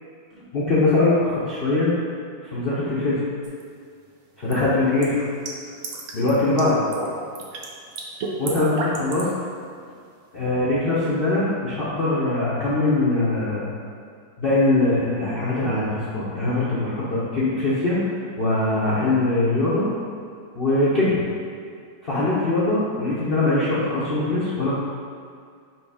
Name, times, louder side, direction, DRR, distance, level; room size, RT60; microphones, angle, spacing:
voice 1, 0.5-1.9 2.4-3.3 4.4-5.1 6.1-6.8 8.4-9.3 10.3-13.7 14.4-18.0 18.4-19.8 20.5-21.2 22.0-24.7, left 2 dB, 40° left, -10 dB, 0.8 m, -22 dB
sound 1, 3.4-3.6 4.5-6.3 6.6-7.1 7.3-7.7 8.0-9.3, right 3 dB, 65° right, 0.8 m, -31 dB
6.1 x 3.2 x 4.9 m, 2.2 s
omnidirectional pair, 2.1 m